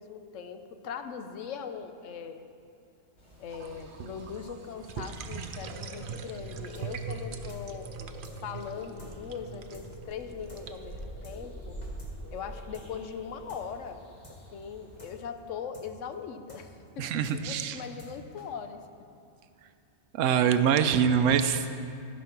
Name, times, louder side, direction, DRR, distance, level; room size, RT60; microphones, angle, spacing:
voice 1, 0.0-2.5 3.4-7.9 8.4-11.8 12.3-14.0 14.5-16.7 17.0-17.1 17.3-18.8, left 7 dB, 75° left, 8 dB, 1.0 m, -40 dB
sound 1, 3.2-15.1, right 1 dB, 60° left, 2.8 m, -46 dB
sound 2, 3.5-11.1, right 5 dB, 55° right, 0.6 m, -42 dB
sound 3, 6.7-6.9 7.1-7.2 7.5-7.6 7.9-8.0 8.2-8.4 8.6-8.7 9.0-9.1 9.4-9.5 9.7-9.9 10.1-10.2 10.5-10.6 10.9-11.0 11.2-11.4 11.6-12.1 12.4-12.5 12.7-12.9 13.1-13.2 13.5-13.6 13.9-14.0 14.2-14.4 14.6-14.7 15.0-15.1 15.4-15.5 15.7-15.9 16.1-16.2 16.5-16.6 16.9-17.0 17.2-17.4 17.6-18.1 18.4-18.5, right 1 dB, 35° left, 1.6 m, -52 dB
voice 2, 17.0-17.8 20.1-21.7, right 8 dB, 80° right, 10 dB, 0.9 m, -24 dB
14.0 x 5.3 x 5.8 m, 2.5 s
omnidirectional pair, 1.3 m